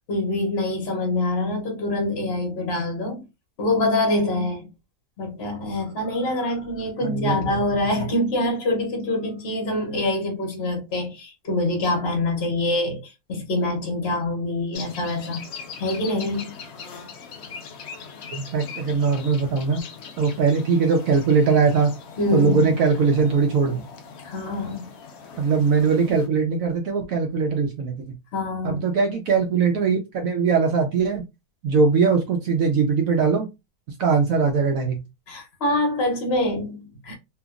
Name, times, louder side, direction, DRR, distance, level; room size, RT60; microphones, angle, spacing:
voice 1, 0.1-3.3 3.6-4.7 5.2-15.4 15.8-16.5 22.2-22.7 24.2-24.9 28.3-28.8 35.3-37.2, left 2 dB, 50° left, 0.8 m, -25 dB
voice 2, 7.0-7.6 18.3-19.8 20.2-21.9 22.3-23.8 25.4-28.0 28.6-31.2 31.6-33.5 34.0-35.0, right 5 dB, 70° right, 0.8 m, -21 dB
sound 1, 14.7-26.3, left 5 dB, 80° left, 0.6 m, -41 dB
2.8 x 2.4 x 2.3 m
omnidirectional pair, 1.8 m